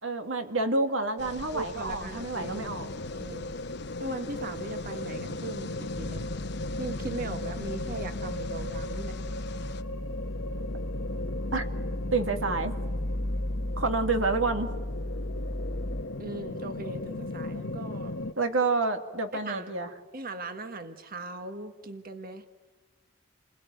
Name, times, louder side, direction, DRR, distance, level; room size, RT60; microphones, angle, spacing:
voice 1, 0.0-2.9 11.5-11.7 12.1-12.7 13.8-14.7 18.4-19.9, right 3 dB, 90° right, 6 dB, 2.4 m, -28 dB
sound 1, 1.2-9.8, left 3 dB, 60° left, 1.0 m, -44 dB
voice 2, 1.5-2.5 2.8-3.5 4.0-6.3 6.8-9.2 16.2-18.2 19.4-19.7 20.1-22.4, right 2 dB, 50° right, 7 dB, 1.5 m, -39 dB
sound 2, 2.4-18.3, left 2 dB, 75° left, 1.1 m, -37 dB
sound 3, 6.0-16.0, left 1 dB, 20° left, 0.9 m, -35 dB
29.5 x 21.5 x 9.2 m, 1.3 s
head